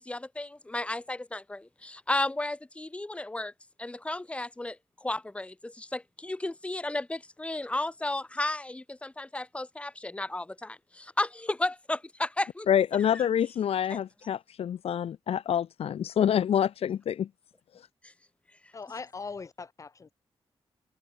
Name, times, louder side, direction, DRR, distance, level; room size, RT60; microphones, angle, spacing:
voice 1, 0.0-3.5 3.8-4.8 5.0-12.7 13.1-13.3 13.9-14.0 18.0-18.1, left 2 dB, 10° left, 3.2 m, -33 dB
voice 2, 12.7-17.3, left 9 dB, 80° left, 1.4 m, -27 dB
voice 3, 18.7-20.1, left 4 dB, 30° left, 7.6 m, -40 dB
wide cardioid pair, 170°, 10 cm